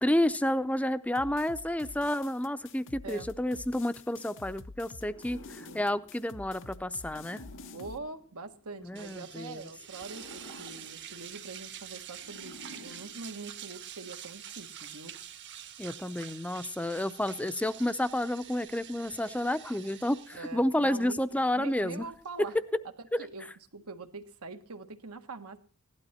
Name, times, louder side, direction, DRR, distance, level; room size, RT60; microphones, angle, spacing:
voice 1, 0.0-7.4 8.8-9.7 15.8-22.1 23.1-23.2, left 1 dB, 5° left, 13 dB, 0.6 m, -30 dB
sound 1, 1.1-8.0, left 3 dB, 60° left, 0.7 m, -49 dB
sound 2, 5.0-9.1 9.8-13.8, left 1 dB, 90° left, 2.3 m, -52 dB
voice 2, 5.5-5.8 7.7-15.1 20.3-22.5 23.2-23.5 23.7-25.6, right 3 dB, 80° right, 7 dB, 1.6 m, -44 dB
sound 3, 9.0-22.5, right 10 dB, 55° right, 1.3 m, -47 dB
16.5 x 12.0 x 4.3 m, 0.43 s
head